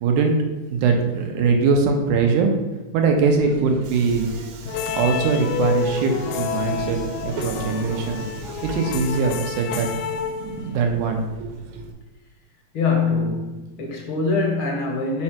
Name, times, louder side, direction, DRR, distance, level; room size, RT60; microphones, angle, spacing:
voice 1, 0.0-0.4 0.7-2.5 2.9-4.3 4.9-8.2 8.6-9.9 10.4-11.5, right 4 dB, 90° right, 3 dB, 2.4 m, -21 dB
Subway metro underground, 3.2-11.9, right 5 dB, 70° right, 1.9 m, -37 dB
sound 1, 4.7-10.9, left 6 dB, 80° left, 1.9 m, -29 dB
voice 2, 12.7-15.2, left 4 dB, 60° left, 1 dB, 1.5 m, -23 dB
5.5 x 4.3 x 5.9 m, 1.1 s
omnidirectional pair, 3.5 m